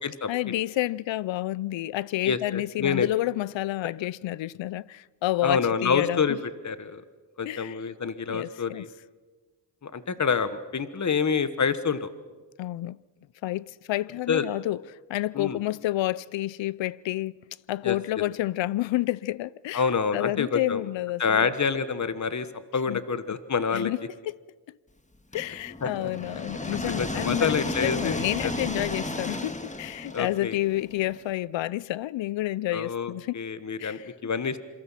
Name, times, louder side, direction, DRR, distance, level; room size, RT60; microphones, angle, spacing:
voice 1, 0.3-6.4 7.4-7.8 8.3-8.8 12.6-13.0 13.4-14.8 15.1-17.4 17.7-19.8 20.1-21.5 22.9-23.0 23.7-24.0 24.3-24.4 25.3-33.4 33.8-34.1, left 16 dB, 80° left, 0.6 m, -29 dB
voice 2, 2.2-3.1 5.4-7.0 7.4-8.9 9.8-12.1 14.3-14.5 15.3-15.6 17.8-18.0 19.7-20.8 21.2-22.5 22.7-23.9 25.8-25.9 27.0-28.5 30.1-30.6 32.7-34.6, left 6 dB, 40° left, 1.4 m, -27 dB
sound 1, 25.3-31.2, left 2 dB, 15° left, 1.7 m, -33 dB
27.0 x 23.0 x 5.8 m
cardioid pair, 75°, 44 cm